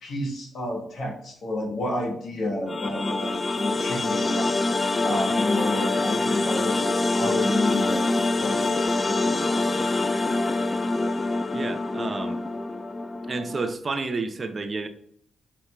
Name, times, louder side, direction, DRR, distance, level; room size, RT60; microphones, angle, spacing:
voice 1, 0.0-4.5 5.0-6.9 7.2-8.1 8.4-8.8 9.0-10.4, left 1 dB, 65° left, -2 dB, 1.2 m, -30 dB
sound 1, 2.7-13.7, left 2 dB, 35° left, 0.4 m, -25 dB
voice 2, 11.5-12.4 13.3-14.9, right 3 dB, 45° right, 8 dB, 0.5 m, -30 dB
5.6 x 2.9 x 2.2 m, 0.68 s
hypercardioid pair, 45°, 0 cm